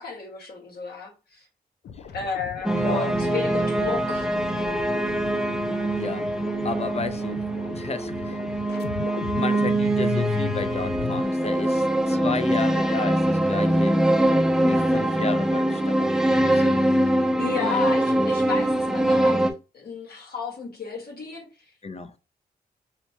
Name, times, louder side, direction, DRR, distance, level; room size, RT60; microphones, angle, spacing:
voice 1, 0.0-1.4 2.1-4.3 17.4-19.4 19.7-21.5, left 5 dB, 70° left, 1.7 m, -32 dB
sound 1, 1.8-11.2, left 6 dB, 90° left, 0.5 m, -35 dB
sound 2, 2.6-19.5, right 1 dB, 5° right, 0.6 m, -23 dB
voice 2, 2.7-3.2 5.9-6.3 6.6-8.4 9.2-14.0 14.6-16.1 16.4-16.8 17.6-17.9 21.8-22.1, left 4 dB, 40° left, 0.6 m, -32 dB
5.6 x 2.1 x 2.9 m
cardioid pair, 60°, 17 cm